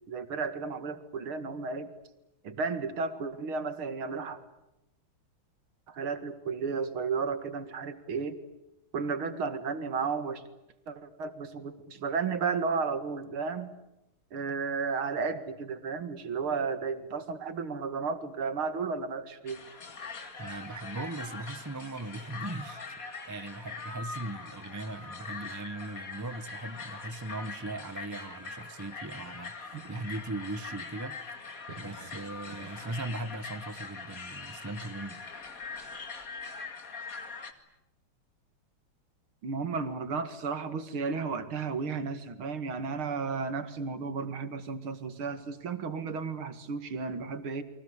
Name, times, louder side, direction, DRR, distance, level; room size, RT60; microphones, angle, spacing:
voice 1, 0.1-1.9 2.4-4.4 5.9-8.4 8.9-10.4 10.9-13.7 14.3-19.6 29.7-29.8 31.7-31.9 32.5-32.7 39.4-47.6, right 5 dB, 75° right, 2.8 m, -33 dB
sound 1, 19.5-37.5, left 4 dB, 40° left, 2.6 m, -42 dB
voice 2, 20.4-22.9 23.3-31.2 31.8-35.2, right 2 dB, 20° right, 0.4 m, -39 dB
30.0 x 23.5 x 8.2 m
omnidirectional pair, 2.4 m